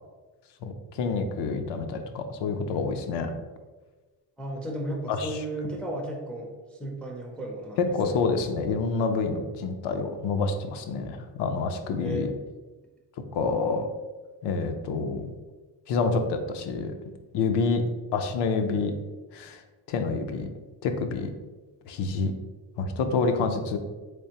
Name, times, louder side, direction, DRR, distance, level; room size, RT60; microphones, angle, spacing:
voice 1, 0.6-3.3 5.1-5.4 7.8-12.3 13.3-13.9 14.4-15.3 15.9-16.9 17.3-17.8 18.1-18.9 19.3-19.6 19.9-20.5 20.8-21.3 21.9-22.3 22.8-23.8, left 4 dB, 80° left, 6 dB, 0.5 m, -27 dB
voice 2, 4.4-8.2 12.0-12.3, right 1 dB, 5° left, -1 dB, 0.3 m, -34 dB
3.4 x 3.2 x 2.8 m, 1.3 s
cardioid pair, 140°, 42 cm